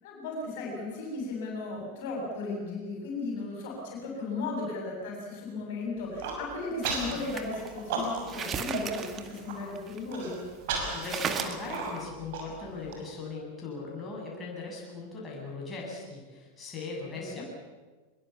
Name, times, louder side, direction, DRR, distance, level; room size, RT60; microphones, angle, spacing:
voice 1, 0.0-10.4 17.1-17.4, left 3 dB, 50° left, 0 dB, 7.6 m, -36 dB
Human voice, 6.0-6.4 6.8-7.2 7.5-8.4 8.7-8.8 9.2-9.6 10.1-13.0, right 4 dB, 50° right, 6.2 m, -34 dB
sound 1, 6.8-10.3 10.7-10.8 11.0-12.0, right 7 dB, 25° right, 1.9 m, -36 dB
voice 2, 10.9-17.4, left 3 dB, 20° left, -3 dB, 8.0 m, -39 dB
24.0 x 22.5 x 7.2 m, 1.3 s
figure-of-eight pair, 90°, 0 cm